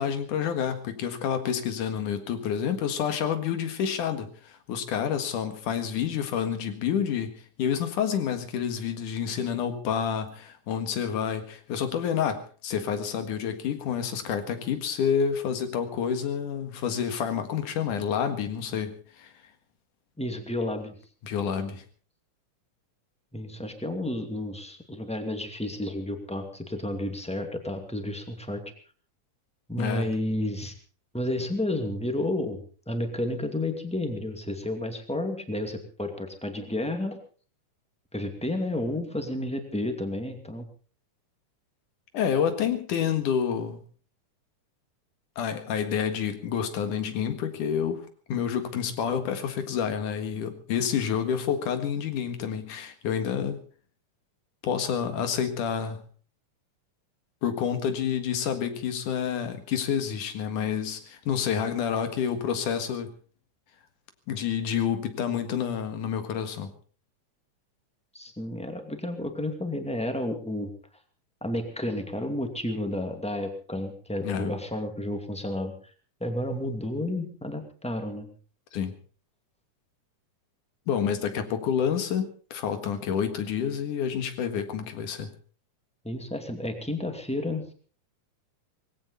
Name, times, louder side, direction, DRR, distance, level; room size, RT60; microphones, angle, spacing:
voice 1, 0.0-7.3 7.6-19.3 21.2-21.8 29.8-30.1 42.1-43.8 45.4-53.6 54.6-56.0 57.4-63.1 64.3-66.7 74.2-74.5 78.7-78.9 80.9-85.3, left 8 dB, 80° left, 8 dB, 3.3 m, -28 dB
voice 2, 20.2-21.0 23.3-28.6 29.7-30.7 31.1-32.6 32.9-37.2 38.1-40.7 68.1-70.7 71.4-75.7 76.2-78.3 86.0-87.7, left 1 dB, ahead, 5 dB, 1.9 m, -31 dB
20.0 x 16.5 x 4.1 m, 0.41 s
omnidirectional pair, 3.6 m